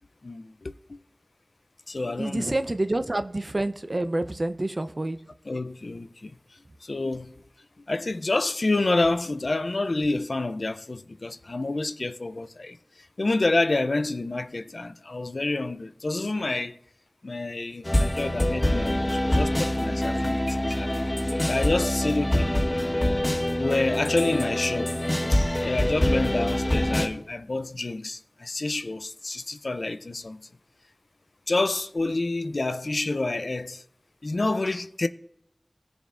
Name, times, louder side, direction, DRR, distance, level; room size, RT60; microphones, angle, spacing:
voice 1, 0.2-1.0 1.9-2.6 5.5-6.4 6.8-7.4 7.9-12.8 13.2-16.8 17.2-22.5 23.6-25.0 25.3-30.5 31.5-33.8 34.2-35.1, left 2 dB, 80° left, 0.4 m, -28 dB
voice 2, 2.2-5.2, right 2 dB, 55° right, 0.6 m, -28 dB
sound 1, 17.8-27.1, left 1 dB, 35° left, 1.6 m, -25 dB
18.5 x 6.9 x 2.5 m
wide cardioid pair, 45°, 0 cm